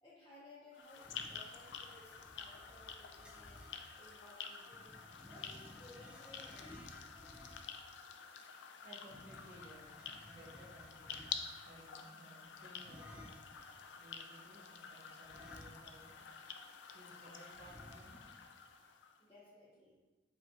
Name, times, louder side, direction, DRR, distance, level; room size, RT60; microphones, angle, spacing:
voice 1, 0.0-3.6 4.0-7.1 19.2-20.0, left 1 dB, 20° left, -9 dB, 0.8 m, -60 dB
sound 1, 0.7-19.2, left 7 dB, 90° left, 0.4 m, -50 dB
sound 2, 0.9-3.9 4.7-7.9 9.0-11.7 12.8-13.6 15.2-16.2 16.5-16.6 17.5-18.4, left 1 dB, 5° right, 0.4 m, -57 dB
voice 2, 8.8-9.9 10.2-11.2 11.6-13.3 14.0-16.3 16.9-18.2, right 1 dB, 55° right, -14 dB, 1.4 m, -58 dB
5.1 x 2.4 x 4.2 m, 1.2 s
head